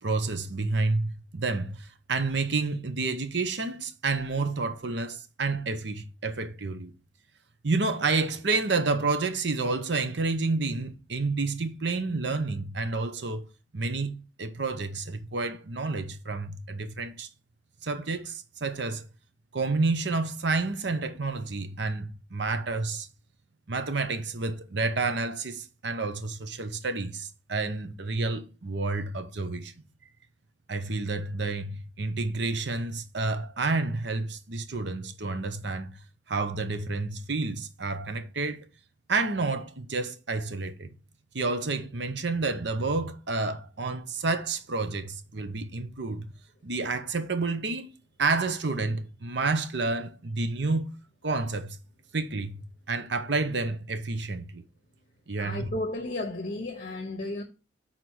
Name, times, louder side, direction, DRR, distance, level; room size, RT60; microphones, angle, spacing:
voice 1, 0.0-6.9 7.6-13.5 13.7-17.3 17.8-19.0 19.5-23.1 23.7-29.7 30.7-36.0 36.3-38.7 39.1-40.9 41.3-46.3 46.6-47.9 48.2-50.9 51.2-51.8 52.1-54.6 55.3-55.7, right 3 dB, 65° right, 0.8 m, -29 dB
voice 2, 55.3-57.4, left 2 dB, 45° left, 1.0 m, -33 dB
6.0 x 4.2 x 6.2 m
head